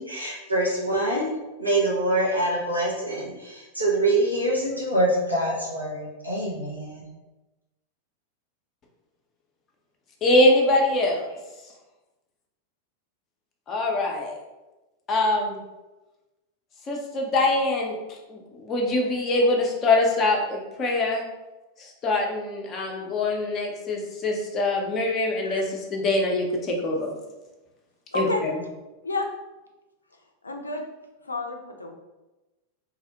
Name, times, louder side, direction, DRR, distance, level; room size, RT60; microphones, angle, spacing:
voice 1, 0.0-1.3 1.6-7.0, right 1 dB, 85° right, -5 dB, 0.5 m, -25 dB
voice 2, 10.2-11.2 13.7-14.3 15.1-15.6 16.9-17.9 18.3-21.2 21.8-27.1 28.1-28.6, left 2 dB, 25° left, 0 dB, 0.5 m, -23 dB
voice 3, 28.1-28.4 29.0-29.3 30.4-30.8 31.3-32.0, left 2 dB, 80° left, 3 dB, 0.3 m, -30 dB
2.5 x 2.0 x 2.7 m, 1.1 s
figure-of-eight pair, 90°, 0 cm